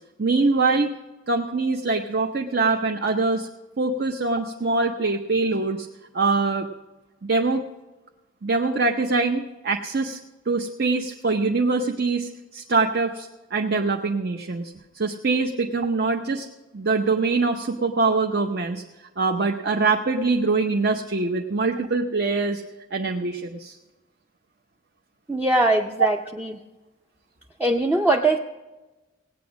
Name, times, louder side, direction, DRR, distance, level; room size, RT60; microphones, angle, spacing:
voice 1, 0.2-0.9 1.3-3.5 3.8-5.9 6.1-6.7 7.2-7.6 8.4-10.2 10.5-16.5 16.7-18.8 19.2-22.6 22.9-23.7, right 3 dB, 50° right, 4 dB, 0.7 m, -23 dB
voice 2, 25.3-26.5 27.6-28.4, right 2 dB, 10° right, 2 dB, 0.5 m, -21 dB
17.5 x 8.6 x 6.1 m, 1.1 s
head